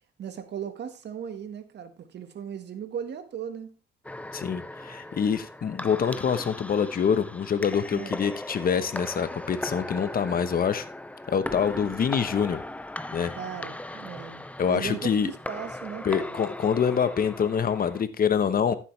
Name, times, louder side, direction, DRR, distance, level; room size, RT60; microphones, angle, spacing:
voice 1, 0.2-3.7 7.9-8.2 13.3-16.3, right 8 dB, 60° right, 1.7 m, -37 dB
sound 1, 4.0-18.0, left 1 dB, 5° left, 0.6 m, -38 dB
voice 2, 4.3-10.9 11.3-12.6 13.1-13.3 14.6-15.3 16.0-18.7, left 7 dB, 50° left, 1.1 m, -25 dB
13.5 x 7.5 x 3.3 m
cardioid pair, 90°, 20 cm